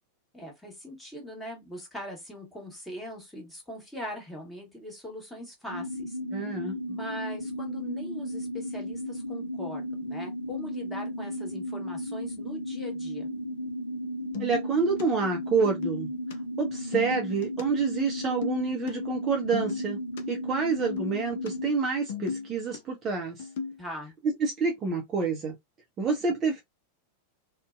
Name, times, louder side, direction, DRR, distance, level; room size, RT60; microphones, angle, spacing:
voice 1, 0.3-6.5 6.9-13.3 23.8-24.1, equal, 5° left, 1.2 m, -41 dB
sound 1, 5.7-21.7, equal, 85° right, 0.7 m, -35 dB
voice 2, 6.3-6.7 14.4-16.1 16.6-20.0 20.3-23.5 24.4-25.5 26.0-26.6, right 5 dB, 25° right, 0.6 m, -28 dB
sound 2, 14.3-15.0 15.5-16.3 16.8-17.6 18.2-18.6 18.9-19.0 19.2-20.2 20.8-21.5 21.9-22.8 23.4-23.8, left 6 dB, 55° left, 0.5 m, -35 dB
2.6 x 2.1 x 2.3 m
figure-of-eight pair, 90°, 0 cm